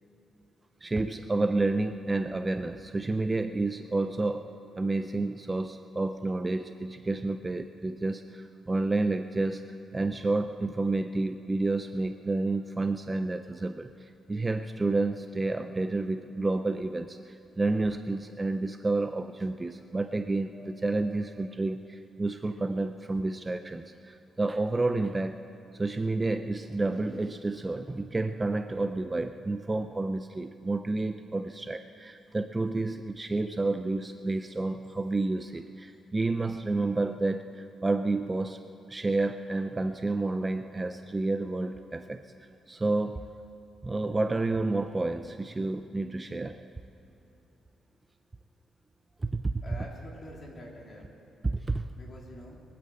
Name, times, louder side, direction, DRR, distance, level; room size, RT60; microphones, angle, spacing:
voice 1, 0.8-4.5 4.8-25.4 25.7-38.6 38.9-42.2 42.7-43.3 43.8-46.6 49.2-49.6 51.4-51.9, right 2 dB, 15° right, 8 dB, 0.4 m, -30 dB
voice 2, 49.6-51.1 52.0-52.6, left 1 dB, 35° left, -2 dB, 3.0 m, -46 dB
22.0 x 8.6 x 7.6 m, 2.9 s
cardioid pair, 155°, 0 cm